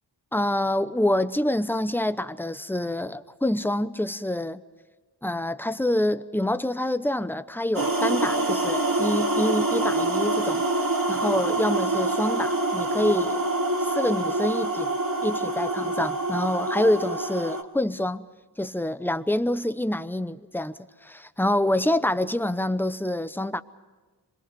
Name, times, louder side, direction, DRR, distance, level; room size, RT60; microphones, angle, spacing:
voice 1, 0.3-4.6 5.2-10.6 11.1-13.4 13.8-14.9 15.2-18.3 18.6-23.6, left 1 dB, 5° left, 0.8 m, -26 dB
sound 1, 7.7-17.6, right 2 dB, 50° right, 2.2 m, -26 dB
27.0 x 22.0 x 5.4 m
wide cardioid pair, 75°, 43 cm